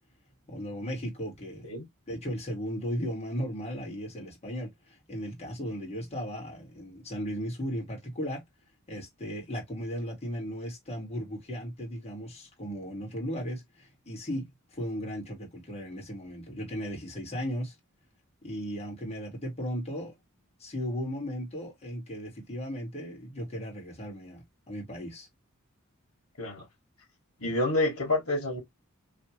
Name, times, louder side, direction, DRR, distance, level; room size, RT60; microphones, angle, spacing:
voice 1, 0.5-1.7 2.1-4.7 5.1-8.4 8.9-17.8 18.4-20.1 20.6-25.3, equal, 30° left, 2.0 m, -36 dB
voice 2, 27.4-28.6, left 2 dB, 85° left, 1.6 m, -28 dB
3.3 x 2.8 x 2.9 m
head